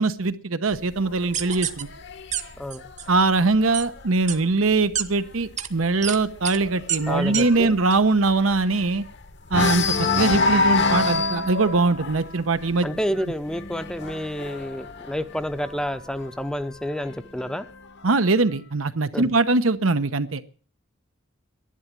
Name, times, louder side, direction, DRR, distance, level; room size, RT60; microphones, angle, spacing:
voice 1, 0.0-1.9 3.1-9.0 9.5-12.9 18.0-20.5, right 3 dB, 90° right, 1.0 m, -22 dB
sound 1, 0.7-4.3 4.7-5.1 5.3-5.4 5.8-9.1 9.5-16.0 16.9-17.9, left 3 dB, 60° left, 1.1 m, -27 dB
sound 2, 1.3-1.8 2.3-2.4 2.7-3.1 3.7-3.8 4.3-4.4 5.0-5.1 5.6-5.7 6.0-6.2 6.4-6.6 6.9-7.0 7.3-7.4 7.9-8.0, right 9 dB, 35° right, 1.0 m, -27 dB
voice 2, 7.1-7.7 12.8-17.6 19.1-19.3, equal, 5° left, 0.6 m, -29 dB
11.5 x 11.0 x 7.5 m
head